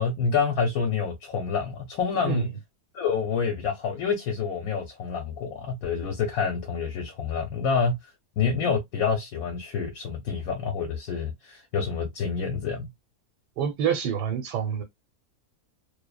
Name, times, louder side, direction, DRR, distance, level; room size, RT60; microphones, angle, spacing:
voice 1, 0.0-2.5 2.9-8.0 8.4-12.9, left 5 dB, 65° left, 1.0 m, -27 dB
voice 2, 2.2-2.6 13.6-14.8, right 8 dB, 90° right, 1.2 m, -27 dB
2.7 x 2.0 x 2.2 m
omnidirectional pair, 1.7 m